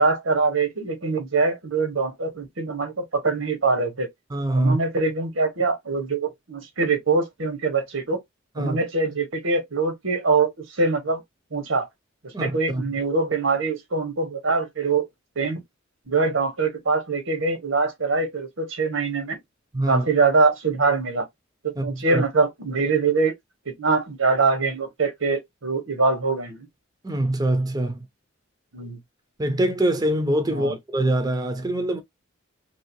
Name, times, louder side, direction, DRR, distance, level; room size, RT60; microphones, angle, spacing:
voice 1, 0.0-4.1 4.5-8.2 8.6-11.2 11.5-11.9 12.2-15.1 15.4-15.6 16.1-19.4 19.9-21.3 21.6-23.3 23.7-26.7 28.7-29.0 30.5-30.7, right 4 dB, 90° right, 1.3 m, -23 dB
voice 2, 4.3-4.8 8.6-8.8 12.3-12.8 19.7-20.1 21.8-22.2 27.0-28.1 29.4-32.0, right 1 dB, 20° right, 0.5 m, -24 dB
3.0 x 2.7 x 2.9 m
head